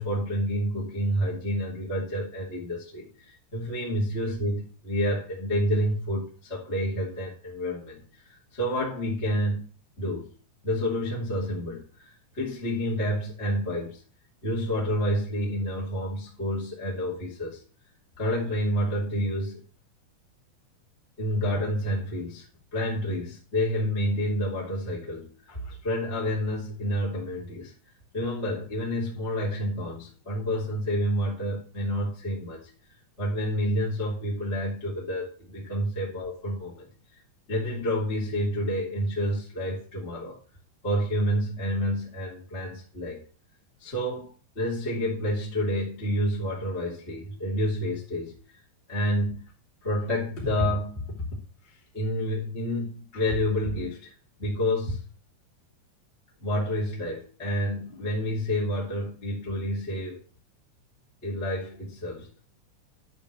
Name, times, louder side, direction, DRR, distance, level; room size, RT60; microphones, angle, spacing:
voice 1, 0.0-9.6 10.0-10.3 10.6-14.0 14.4-17.6 18.2-19.6 21.2-22.5 22.7-27.7 28.1-32.7 33.2-36.9 37.5-40.4 40.8-43.2 43.8-48.6 48.9-49.5 49.8-51.1 51.9-54.1 54.4-55.0 56.4-60.2 61.2-62.4, equal, 20° left, 2.6 m, -29 dB
12.0 x 4.3 x 8.0 m
omnidirectional pair, 3.8 m